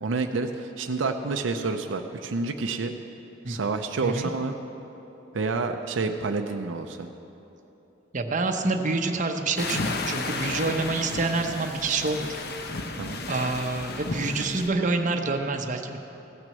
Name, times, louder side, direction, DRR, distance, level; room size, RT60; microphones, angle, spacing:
voice 1, 0.0-2.9 3.5-4.5 5.3-7.1 12.9-13.2, right 3 dB, 80° right, 5 dB, 0.6 m, -28 dB
voice 2, 8.1-12.3 13.3-16.0, right 3 dB, 45° right, 4 dB, 0.8 m, -27 dB
sound 1, 9.6-14.7, left 2 dB, 60° left, 0.8 m, -33 dB
16.0 x 6.1 x 7.7 m, 3.0 s
head